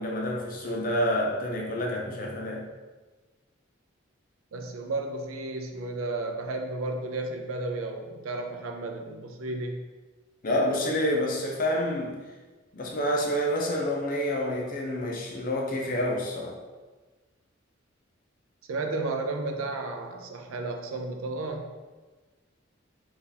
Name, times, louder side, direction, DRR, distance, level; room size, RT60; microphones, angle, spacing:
voice 1, 0.0-2.7 10.4-12.2 12.7-16.6, left 1 dB, 40° left, -1 dB, 0.5 m, -28 dB
voice 2, 4.5-9.8 18.7-21.7, right 2 dB, 85° right, 4 dB, 0.4 m, -33 dB
2.8 x 2.4 x 3.9 m, 1.3 s
head